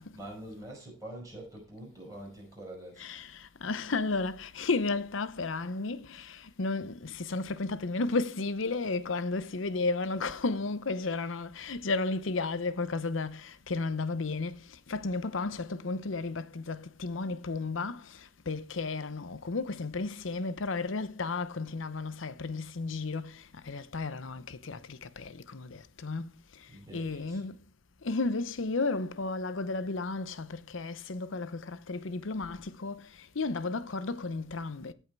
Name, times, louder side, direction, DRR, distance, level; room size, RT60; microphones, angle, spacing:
voice 1, 0.0-3.1 26.7-27.5, right 1 dB, 15° right, 5.6 m, -45 dB
voice 2, 3.0-26.3 26.6-27.6 28.0-34.9, left 3 dB, 85° left, 0.8 m, -33 dB
16.0 x 5.6 x 4.6 m
head